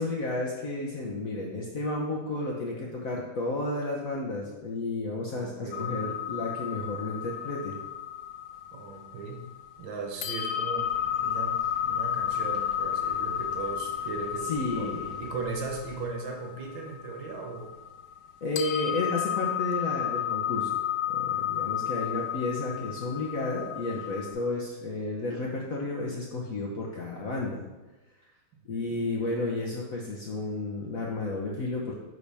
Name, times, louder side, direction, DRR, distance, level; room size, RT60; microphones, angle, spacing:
voice 1, 0.0-7.7 14.5-15.2 18.4-20.8 21.1-27.6 28.6-32.0, left 2 dB, 55° left, -2 dB, 1.0 m, -32 dB
voice 2, 5.3-5.9 8.7-9.5 9.8-17.7 28.7-29.0, right 4 dB, 65° right, 2 dB, 1.6 m, -38 dB
sound 1, 5.7-9.8 10.2-18.3 18.6-24.3, left 9 dB, 80° left, 1.3 m, -32 dB
sound 2, 10.8-16.1, equal, ahead, 1.3 m, -52 dB
9.8 x 4.1 x 3.4 m, 1.1 s
omnidirectional pair, 2.3 m